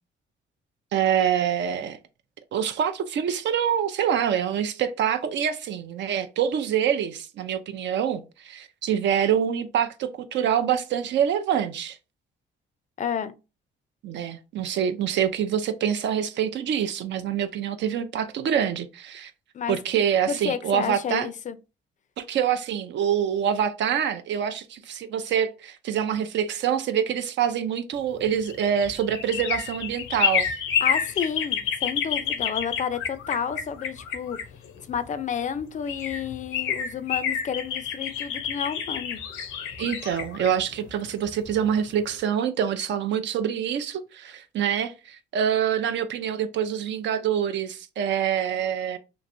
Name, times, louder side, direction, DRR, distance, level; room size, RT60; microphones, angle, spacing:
voice 1, 0.9-2.0 2.5-12.0 14.0-19.3 19.7-21.3 22.2-30.5 39.8-49.0, right 9 dB, 65° right, 0.5 m, -26 dB
voice 2, 13.0-13.3 19.5-19.8 20.3-21.6 30.8-34.4 34.9-39.2, left 7 dB, 40° left, 0.4 m, -30 dB
sound 1, 28.2-35.0 35.6-35.7 35.9-41.7 42.0-42.1, left 7 dB, 85° left, 0.6 m, -29 dB
3.0 x 2.5 x 2.5 m
cardioid pair, 90°, 20 cm